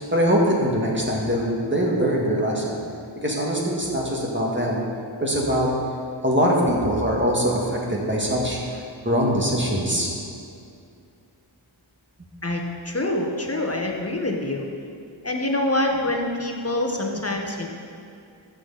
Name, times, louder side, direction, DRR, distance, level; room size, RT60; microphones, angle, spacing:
voice 1, 0.1-2.8 3.2-4.9 5.2-5.7 6.2-8.6 9.0-10.1, equal, 25° right, -3 dB, 2.0 m, -22 dB
voice 2, 12.4-14.7 15.2-17.7, left 1 dB, 30° left, 1 dB, 1.3 m, -25 dB
14.0 x 6.7 x 4.2 m, 2.4 s
wide cardioid pair, 45°, 47 cm